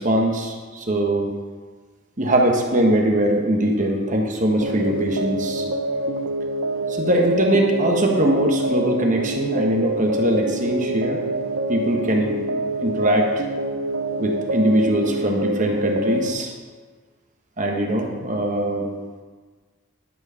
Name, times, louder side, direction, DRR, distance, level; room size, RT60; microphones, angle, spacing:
voice 1, 0.0-1.3 2.2-5.6 6.9-11.2 11.7-13.4 14.2-16.5 17.6-18.9, right 1 dB, 35° right, 1 dB, 1.2 m, -21 dB
sound 1, 4.6-16.3, right 1 dB, 65° right, 0.5 m, -26 dB
11.0 x 4.7 x 5.6 m, 1.5 s
head